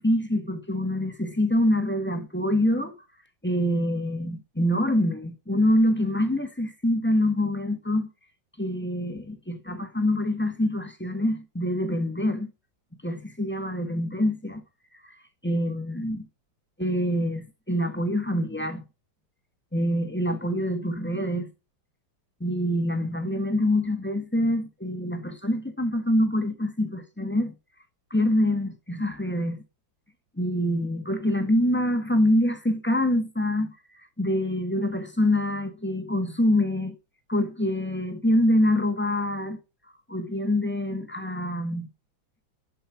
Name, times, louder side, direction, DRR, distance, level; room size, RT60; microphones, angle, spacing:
voice 1, 0.0-2.9 3.4-8.1 8.6-12.5 13.0-14.6 15.4-16.3 16.8-18.8 19.7-21.5 22.4-27.5 28.1-29.6 30.4-33.7 34.2-36.9 37.3-39.6 40.1-41.9, left 1 dB, 5° left, 1.4 m, -25 dB
11.5 x 5.5 x 7.4 m
omnidirectional pair, 2.1 m